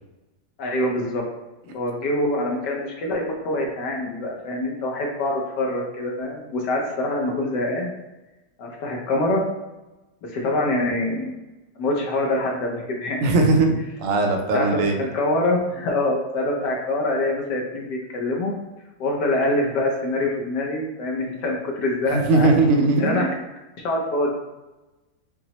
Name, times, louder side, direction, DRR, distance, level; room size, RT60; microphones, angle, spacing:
voice 1, 0.6-1.2 1.7-7.9 8.6-9.4 10.2-11.4 11.8-13.2 14.5-14.7 15.0-18.5 19.0-22.5 23.0-23.3 23.8-24.3, left 1 dB, 80° left, -1 dB, 1.3 m, -25 dB
voice 2, 13.2-13.7 14.0-15.0 22.1-23.3, right 2 dB, 65° right, 3 dB, 0.9 m, -19 dB
5.8 x 2.1 x 2.9 m, 1.0 s
omnidirectional pair, 1.9 m